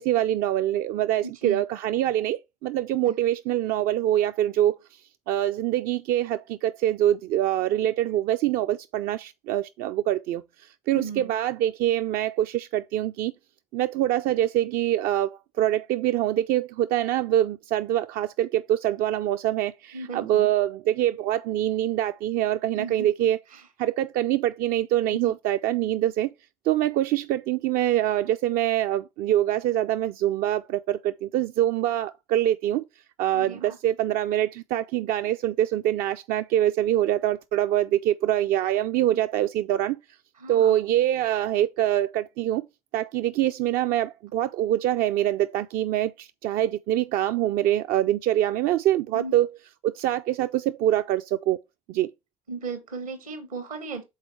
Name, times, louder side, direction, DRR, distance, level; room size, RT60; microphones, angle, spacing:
voice 1, 0.0-4.8 5.3-10.4 10.9-13.3 13.7-23.4 23.8-26.3 26.7-32.8 33.2-40.0 40.5-42.6 42.9-49.5 49.8-51.6 51.9-52.1, right 12 dB, 55° right, 0.4 m, -24 dB
voice 2, 1.2-1.6 3.1-3.2 10.9-11.3 19.9-20.5 22.7-23.3 23.5-23.6 25.1-25.3 33.3-33.8 40.4-40.8 49.1-49.4 52.5-54.0, right 4 dB, 85° right, 1.5 m, -36 dB
6.5 x 4.0 x 4.4 m
figure-of-eight pair, 50°, 18 cm